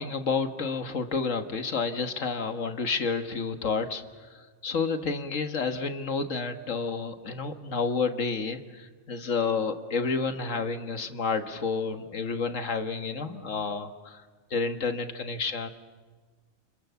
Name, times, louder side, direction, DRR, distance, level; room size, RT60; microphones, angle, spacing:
voice 1, 0.0-4.0 4.3-14.2 14.5-15.7, left 4 dB, 75° left, 8 dB, 1.9 m, -30 dB
29.0 x 26.0 x 7.0 m, 1.4 s
omnidirectional pair, 1.3 m